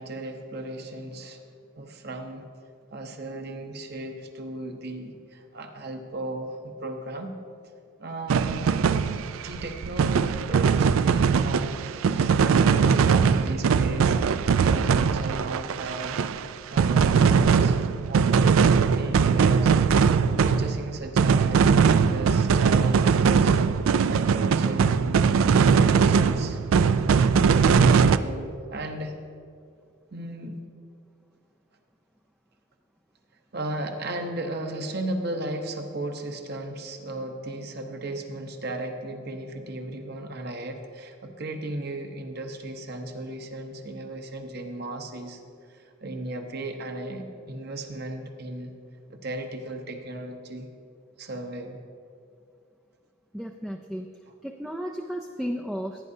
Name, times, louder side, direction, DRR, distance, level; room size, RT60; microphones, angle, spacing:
voice 1, 0.0-1.4 1.8-2.4 2.9-7.3 8.0-8.8 9.4-16.2 16.7-18.5 18.9-20.0 20.2-23.6 24.1-25.2 25.5-27.2 27.5-29.2 30.1-30.6 33.5-45.4 45.7-48.7 49.1-50.7 51.2-51.8, right 2 dB, 50° right, 4 dB, 0.9 m, -36 dB
sound 1, 8.3-16.5 16.8-28.2, right 6 dB, 85° right, 0.4 m, -21 dB
voice 2, 53.3-54.1 54.4-56.1, equal, 5° right, 1 dB, 0.3 m, -34 dB
16.0 x 9.8 x 2.7 m, 2.4 s
head